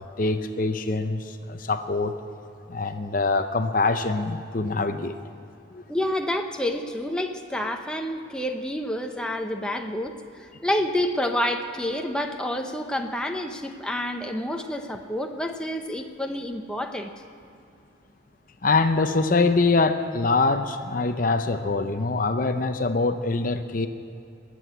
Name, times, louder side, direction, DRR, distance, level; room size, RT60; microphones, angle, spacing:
voice 1, 0.0-2.1 2.7-5.1 5.7-5.8 18.6-23.9, left 3 dB, 45° left, 8 dB, 0.6 m, -24 dB
voice 2, 5.9-17.1, left 1 dB, 5° left, 3 dB, 0.8 m, -28 dB
20.5 x 7.7 x 8.2 m, 2.7 s
head